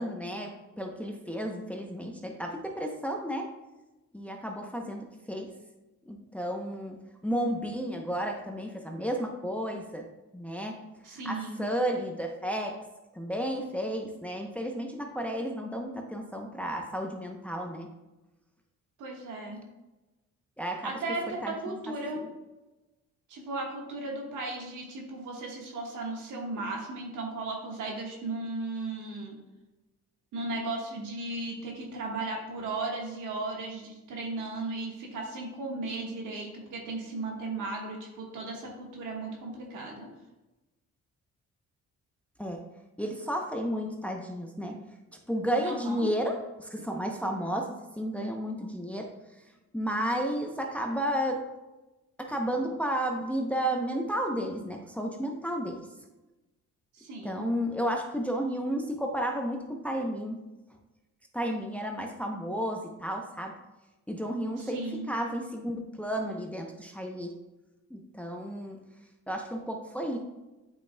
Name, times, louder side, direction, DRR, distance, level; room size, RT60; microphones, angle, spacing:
voice 1, 0.0-3.5 4.1-5.5 6.1-10.8 11.1-12.7 13.1-17.9 20.6-21.0 21.4-21.8 42.4-42.6 43.0-44.8 45.3-49.1 49.7-51.4 52.2-55.9 57.2-60.4 61.3-63.5 64.1-67.4 67.9-68.8 69.3-70.2, equal, 5° left, 2 dB, 0.7 m, -32 dB
voice 2, 11.0-11.7 19.0-19.6 20.8-22.2 23.3-29.4 30.3-40.1 45.6-46.1 56.9-57.4 64.6-65.1, right 2 dB, 80° right, 0 dB, 1.5 m, -36 dB
8.2 x 5.3 x 2.2 m, 1.1 s
cardioid pair, 90°, 30 cm